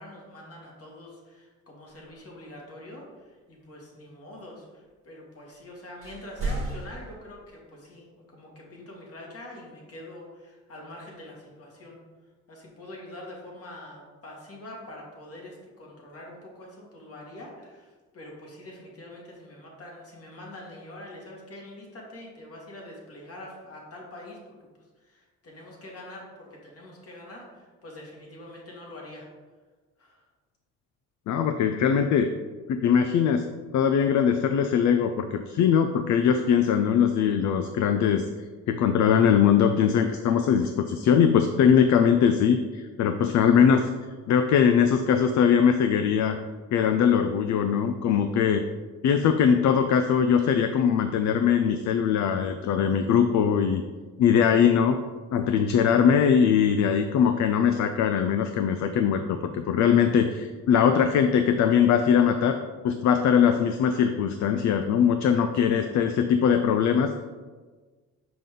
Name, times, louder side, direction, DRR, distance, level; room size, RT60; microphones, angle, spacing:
voice 1, 0.0-12.0 12.5-24.7 25.0-29.3 30.0-30.2 65.8-66.0, left 1 dB, 50° left, -2 dB, 2.0 m, -44 dB
sound 1, 6.0-7.2, right 2 dB, 45° right, 1.4 m, -32 dB
voice 2, 31.3-32.3 32.7-33.4 33.7-38.2 38.7-43.9 44.3-46.4 46.7-48.6 49.0-53.8 54.2-55.0 55.3-62.6 62.8-67.1, left 7 dB, 70° left, 7 dB, 0.5 m, -21 dB
5.9 x 5.3 x 3.7 m, 1.4 s
cardioid pair, 90°, 30 cm